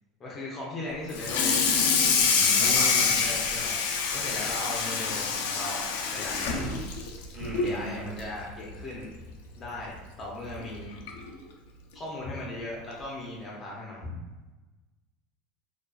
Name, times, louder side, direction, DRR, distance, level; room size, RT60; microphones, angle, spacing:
voice 1, 0.2-1.5 2.5-6.8 7.6-9.1 9.6-11.0 11.9-14.1, left 2 dB, 25° left, -4 dB, 0.5 m, -38 dB
Water tap faucet / Sink (filling or washing), 1.1-7.8 8.2-8.4 8.8-8.9 9.3-9.4 10.5-10.6 11.1-11.3, left 5 dB, 90° left, 0.3 m, -26 dB
voice 2, 2.1-3.1 6.5-6.7 7.3-8.0, right 1 dB, 15° right, -5 dB, 0.8 m, -37 dB
2.3 x 2.3 x 2.3 m, 1.2 s
supercardioid pair, 145°, 0 cm